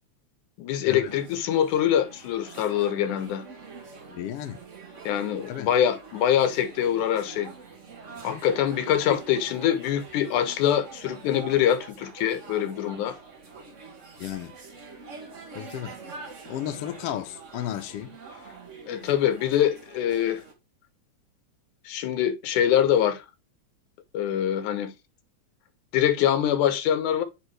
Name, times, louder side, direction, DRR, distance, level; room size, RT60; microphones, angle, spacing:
voice 1, 0.6-3.4 5.1-7.5 8.2-13.2 18.9-20.4 21.9-23.2 24.1-24.9 25.9-27.2, left 10 dB, 90° left, 2.4 m, -24 dB
sound 1, 1.1-20.5, right 4 dB, 75° right, 0.6 m, -45 dB
voice 2, 4.1-4.6 5.5-5.7 8.3-8.4 9.1-9.2 14.2-14.5 15.5-15.9 16.5-18.1, left 12 dB, 70° left, 1.4 m, -33 dB
9.1 x 3.6 x 3.2 m
omnidirectional pair, 3.4 m